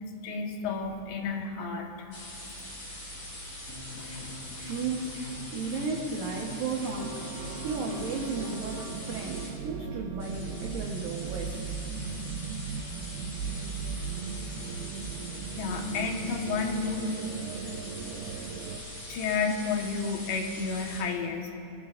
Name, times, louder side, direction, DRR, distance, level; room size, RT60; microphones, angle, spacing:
voice 1, 0.0-2.1 15.6-17.1 19.1-21.5, left 4 dB, 70° left, 2 dB, 3.3 m, -31 dB
sound 1, 2.1-9.5 10.2-21.0, left 1 dB, 35° left, 4.9 m, -42 dB
sound 2, 3.7-8.1, left 2 dB, 50° left, 5.0 m, -44 dB
voice 2, 4.6-5.2 5.5-7.2 7.6-12.2, right 4 dB, 70° right, -1 dB, 2.3 m, -34 dB
sound 3, 6.9-18.8, right 6 dB, 90° right, 2.2 m, -38 dB
27.0 x 19.5 x 2.5 m, 2.6 s
omnidirectional pair, 5.3 m